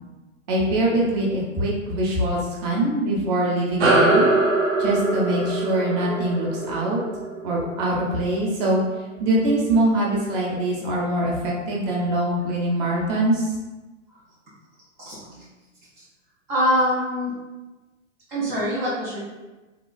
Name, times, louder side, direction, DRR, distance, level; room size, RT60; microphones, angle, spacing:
voice 1, 0.5-4.3 4.8-7.0 7.4-8.8 9.2-13.5, right 1 dB, 35° right, -3 dB, 0.8 m, -23 dB
sound 1, 3.8-8.6, right 2 dB, 70° right, 0.7 m, -22 dB
voice 2, 15.0-15.4 16.0-16.1 16.5-17.3 18.3-19.3, equal, 10° right, -11 dB, 0.3 m, -24 dB
3.7 x 2.4 x 2.2 m, 1.1 s
figure-of-eight pair, 110°, 38 cm